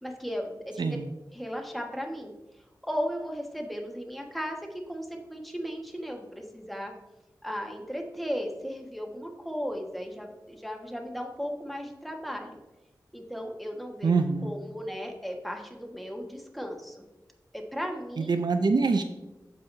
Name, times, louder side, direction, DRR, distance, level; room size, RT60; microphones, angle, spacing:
voice 1, 0.0-1.0 1.3-2.3 2.8-6.9 7.4-12.6 13.1-14.1 14.4-17.0 17.5-18.3, equal, ahead, 1 dB, 1.4 m, -36 dB
voice 2, 14.0-14.5 18.2-19.0, right 4 dB, 70° right, 8 dB, 0.5 m, -25 dB
14.5 x 4.8 x 2.7 m, 1.0 s
cardioid pair, 50°, 8 cm